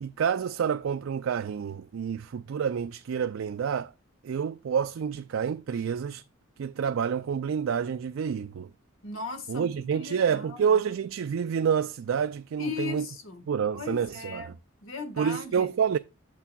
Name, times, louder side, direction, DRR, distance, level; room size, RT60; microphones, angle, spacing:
voice 1, 0.0-3.9 4.2-6.2 6.6-8.7 9.5-13.1 13.5-14.5 15.2-16.0, right 7 dB, 75° right, 0.4 m, -28 dB
voice 2, 9.0-10.7 12.6-13.4 13.7-14.5 14.8-15.7, left 4 dB, 85° left, 1.6 m, -37 dB
8.5 x 6.7 x 2.3 m
head